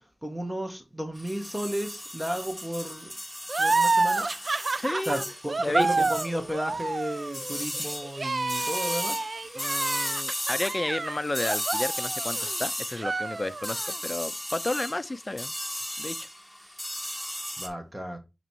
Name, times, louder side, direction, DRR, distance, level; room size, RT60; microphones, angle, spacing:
voice 1, 0.2-3.1 3.6-4.3 5.1-9.2 17.0-17.1 17.6-18.2, equal, 15° right, 1.4 m, -33 dB
sound 1, 1.2-17.7, equal, 5° left, 2.1 m, -35 dB
sound 2, 3.5-12.6 12.9-14.0, right 3 dB, 60° right, 0.4 m, -29 dB
voice 2, 4.8-5.3 5.6-6.1 9.6-15.5 16.0-16.3, left 2 dB, 35° left, 0.5 m, -32 dB
9.0 x 3.1 x 4.5 m
wide cardioid pair, 50°, 0 cm